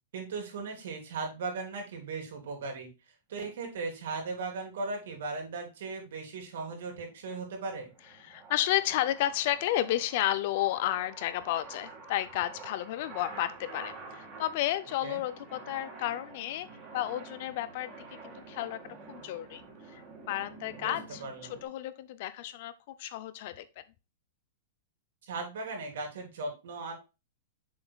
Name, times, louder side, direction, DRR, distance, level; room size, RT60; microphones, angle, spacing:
voice 1, 0.1-2.9 3.3-7.9 15.0-15.2 20.8-20.9 21.2-21.5 25.3-26.9, right 3 dB, 65° right, 1 dB, 3.4 m, -37 dB
sound 1, 6.3-21.7, right 3 dB, 20° right, 2.0 m, -48 dB
voice 2, 8.2-16.7 16.9-19.6 19.9-21.2 21.5-23.8, left 14 dB, 40° left, 14 dB, 0.5 m, -32 dB
7.1 x 7.0 x 2.3 m, 0.28 s
supercardioid pair, 175°, 0 cm